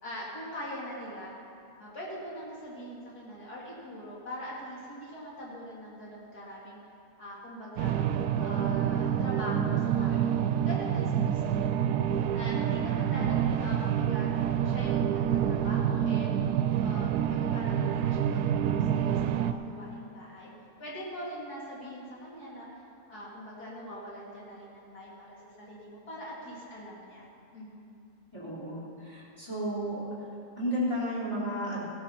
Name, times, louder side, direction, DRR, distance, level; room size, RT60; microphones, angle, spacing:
voice 1, 0.0-1.3 1.8-6.8 7.2-7.9 8.4-11.9 12.3-14.3 14.6-16.3 16.8-20.5 20.8-22.7 23.1-25.4 25.7-27.3 27.5-28.0, equal, 75° left, -6 dB, 3.3 m, -42 dB
sound 1, 7.8-19.5, right 9 dB, 80° right, 1.1 m, -27 dB
voice 2, 28.3-30.3 30.6-31.8, equal, 15° left, -7 dB, 3.7 m, -33 dB
16.0 x 9.5 x 5.7 m, 2.6 s
omnidirectional pair, 1.7 m